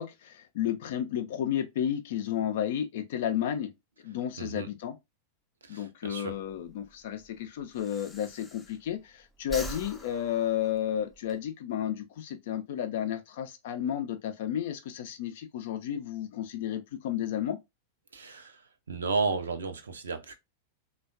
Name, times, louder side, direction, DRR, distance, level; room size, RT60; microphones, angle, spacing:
voice 1, 0.0-3.7 4.0-5.0 5.7-17.6, left 10 dB, 55° left, 0.5 m, -32 dB
voice 2, 4.4-4.7 5.6-6.3 18.1-18.6 18.9-20.4, right 4 dB, 70° right, 0.5 m, -33 dB
Breathing, 6.3-9.1 9.4-11.4, equal, 5° left, 0.5 m, -44 dB
3.4 x 2.2 x 2.3 m
figure-of-eight pair, 90°, 0 cm